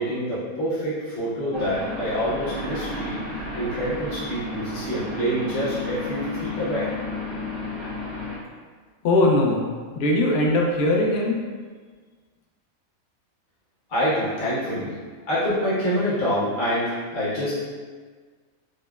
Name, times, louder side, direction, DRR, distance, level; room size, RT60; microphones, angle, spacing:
voice 1, 0.0-3.2 3.5-6.9 13.9-14.9 15.3-17.5, equal, 45° left, -10 dB, 1.0 m, -26 dB
sound 1, 1.5-8.4, left 2 dB, 40° right, 0.5 m, -32 dB
voice 2, 9.0-9.6 9.9-11.4, left 2 dB, 65° left, -1 dB, 0.6 m, -20 dB
4.9 x 2.0 x 2.3 m, 1.5 s
omnidirectional pair, 1.5 m